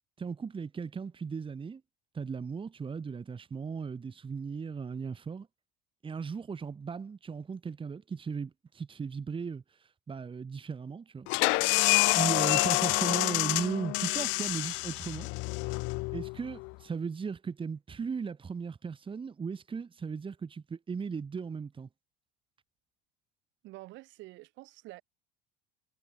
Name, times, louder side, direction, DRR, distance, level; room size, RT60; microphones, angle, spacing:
voice 1, 0.2-1.8 2.1-5.5 6.0-11.9 12.2-15.3 16.1-21.9, right 5 dB, 25° right, 2.1 m, -37 dB
sound 1, 11.3-16.7, left 26 dB, 65° left, 0.8 m, -28 dB
voice 2, 23.6-25.0, right 19 dB, 65° right, 4.3 m, -48 dB
supercardioid pair, 90°, 21 cm